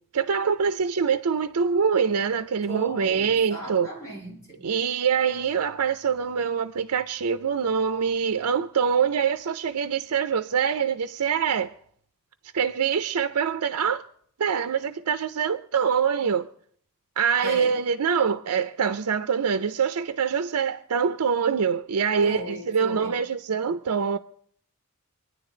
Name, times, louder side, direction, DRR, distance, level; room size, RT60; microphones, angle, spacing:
voice 1, 0.1-3.9 4.6-11.7 12.5-14.0 14.4-16.5 17.2-24.2, right 6 dB, 85° right, 0.5 m, -24 dB
voice 2, 2.7-4.6 17.4-17.8 22.2-23.1, right 2 dB, 15° left, 3.9 m, -35 dB
25.5 x 9.9 x 3.8 m
head